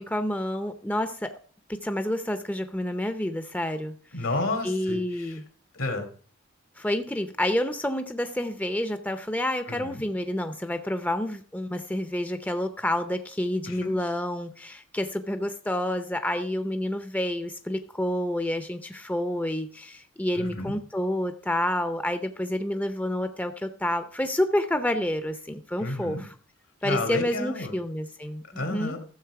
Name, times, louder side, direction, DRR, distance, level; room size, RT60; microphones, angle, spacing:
voice 1, 0.0-1.3 1.7-3.9 4.6-5.4 6.8-26.3 26.8-29.0, left 1 dB, 10° left, 9 dB, 0.6 m, -29 dB
voice 2, 4.1-5.4 5.7-6.1 9.7-10.0 13.7-13.9 20.4-20.7 25.8-26.2 26.8-27.7 28.6-29.0, left 2 dB, 80° left, 6 dB, 2.4 m, -31 dB
13.5 x 7.3 x 4.7 m, 0.43 s
head